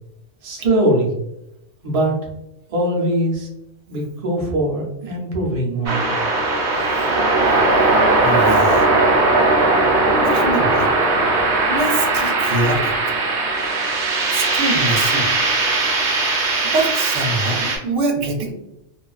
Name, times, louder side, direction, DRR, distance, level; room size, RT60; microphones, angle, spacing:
voice 1, 0.4-1.1 1.8-2.2 2.7-3.5 3.9-6.1, right 1 dB, 40° right, -2 dB, 0.5 m, -21 dB
sound 1, 5.9-17.8, right 2 dB, 60° right, 0.8 m, -18 dB
voice 2, 8.2-8.9 10.2-10.9 11.7-13.1 14.3-15.3 16.6-18.5, right 2 dB, 85° right, 2 dB, 0.9 m, -24 dB
2.4 x 2.3 x 2.3 m, 0.84 s
omnidirectional pair, 1.2 m